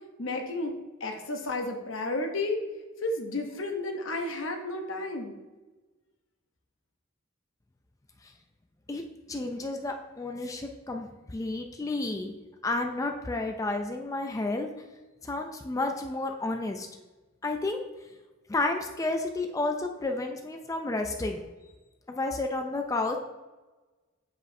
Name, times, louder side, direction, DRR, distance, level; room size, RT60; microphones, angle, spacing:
voice 1, 0.2-2.6 3.0-5.3, left 2 dB, 70° left, 4 dB, 0.9 m, -32 dB
voice 2, 9.3-12.3 12.6-14.7 15.2-16.9 17.4-17.8 18.5-21.4 22.1-23.2, left 2 dB, 15° left, 4 dB, 0.4 m, -31 dB
7.7 x 4.8 x 2.7 m, 1.2 s
head